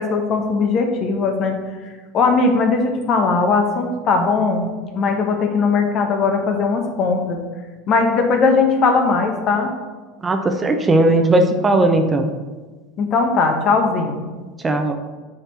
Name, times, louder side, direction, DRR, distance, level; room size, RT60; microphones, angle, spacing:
voice 1, 0.0-1.6 2.1-7.4 7.9-9.7 13.0-14.2, left 4 dB, 45° left, 5 dB, 1.1 m, -19 dB
voice 2, 10.2-12.3 14.6-15.0, right 2 dB, 20° right, 6 dB, 0.7 m, -17 dB
6.6 x 4.5 x 4.3 m, 1.3 s
hypercardioid pair, 85°, 0 cm